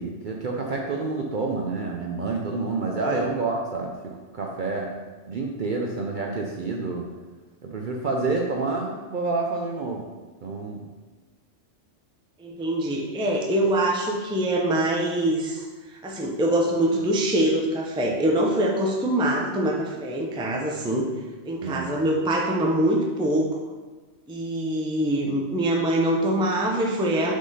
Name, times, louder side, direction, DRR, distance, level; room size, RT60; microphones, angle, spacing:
voice 1, 0.0-4.9 5.3-7.0 7.6-10.1 10.4-10.9 21.6-21.9, right 3 dB, 55° right, 0 dB, 0.6 m, -28 dB
voice 2, 2.8-3.2 12.4-21.1 21.4-23.6 24.3-27.3, right 1 dB, 5° right, -1 dB, 0.4 m, -24 dB
6.1 x 3.8 x 4.0 m, 1.3 s
omnidirectional pair, 1.3 m